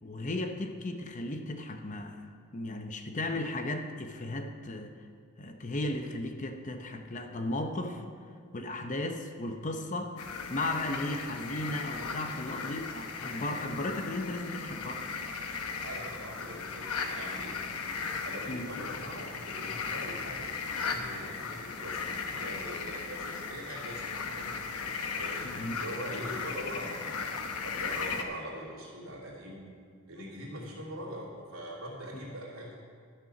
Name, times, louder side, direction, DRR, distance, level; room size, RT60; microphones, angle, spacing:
voice 1, 0.0-2.3 2.5-4.9 5.4-8.0 8.5-10.1 10.5-15.0 18.5-18.7 25.4-25.8, left 1 dB, 35° left, 5 dB, 0.7 m, -35 dB
sound 1, 10.2-28.2, left 5 dB, 80° left, 0.9 m, -37 dB
voice 2, 15.8-17.6 18.2-24.6 25.1-27.2 27.6-29.7 30.1-32.7, equal, 70° right, -5 dB, 2.9 m, -42 dB
12.5 x 6.7 x 5.9 m, 2.2 s
head